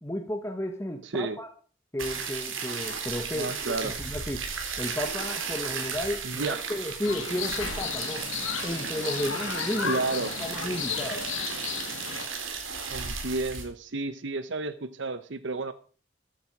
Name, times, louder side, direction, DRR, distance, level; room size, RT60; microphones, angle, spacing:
voice 1, 0.0-1.5 1.9-4.5 4.8-8.3 8.6-10.0 10.4-11.3, left 1 dB, 15° left, 4 dB, 1.3 m, -33 dB
voice 2, 1.0-1.4 3.3-3.9 6.2-6.6 9.8-10.3 12.9-15.7, right 3 dB, 70° right, 13 dB, 0.8 m, -31 dB
sound 1, 2.0-13.6, right 5 dB, 85° right, 4.0 m, -35 dB
sound 2, 7.0-12.3, left 6 dB, 90° left, 2.0 m, -34 dB
14.5 x 11.0 x 4.8 m, 0.41 s
head